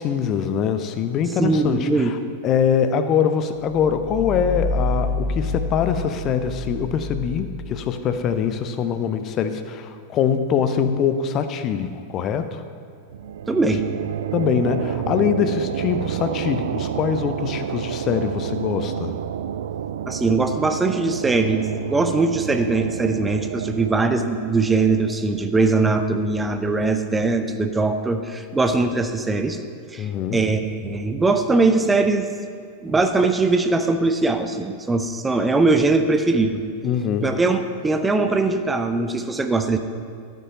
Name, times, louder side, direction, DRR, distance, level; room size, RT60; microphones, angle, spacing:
voice 1, 0.0-2.2 2.4-12.6 14.3-19.2 30.0-30.4 36.8-37.4, left 7 dB, 35° left, 9 dB, 0.7 m, -23 dB
voice 2, 1.4-2.1 13.5-13.8 20.1-29.6 29.9-32.3 32.8-36.6 37.2-39.8, right 3 dB, 10° right, 7 dB, 0.7 m, -21 dB
sound 1, 3.7-8.2, left 2 dB, 75° left, 2.8 m, -28 dB
sound 2, 13.1-26.5, right 9 dB, 60° right, 0.4 m, -30 dB
13.0 x 9.3 x 5.6 m, 2.3 s
figure-of-eight pair, 90°, 0 cm